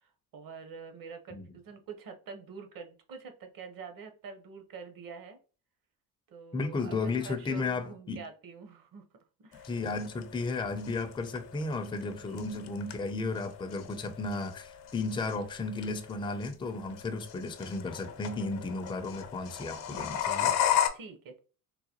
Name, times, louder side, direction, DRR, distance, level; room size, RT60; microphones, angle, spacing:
voice 1, 0.0-5.4 6.3-9.0 9.4-9.7 12.1-12.5 20.9-21.4, right 5 dB, 50° right, 0.9 m, -46 dB
voice 2, 6.5-8.2 9.6-20.5, left 3 dB, 10° left, 0.5 m, -34 dB
sound 1, 9.5-20.9, left 10 dB, 70° left, 0.8 m, -35 dB
3.9 x 2.2 x 2.9 m
supercardioid pair, 75°, 45 cm